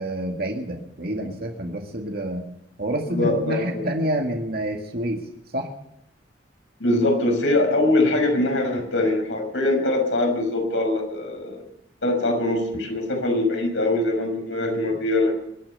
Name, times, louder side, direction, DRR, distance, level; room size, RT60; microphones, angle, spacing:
voice 1, 0.0-2.4 2.8-5.2 5.5-5.7, right 1 dB, 55° right, 2 dB, 2.0 m, -28 dB
voice 2, 3.1-3.8 6.8-11.6 12.0-15.3, left 2 dB, 85° left, 2 dB, 5.8 m, -22 dB
23.5 x 9.0 x 6.8 m, 0.76 s
head